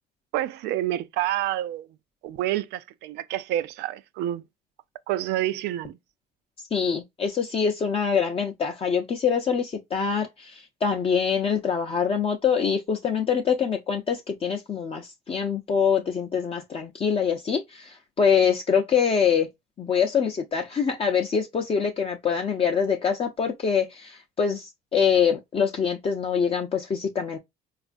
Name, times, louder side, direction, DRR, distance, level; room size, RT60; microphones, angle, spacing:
voice 1, 0.3-1.9 2.2-4.4 5.1-6.0, right 13 dB, 85° right, 0.4 m, -28 dB
voice 2, 6.7-19.5 19.8-27.4, left 6 dB, 35° left, 0.5 m, -24 dB
4.2 x 2.4 x 2.4 m
cardioid pair, 110°, 17 cm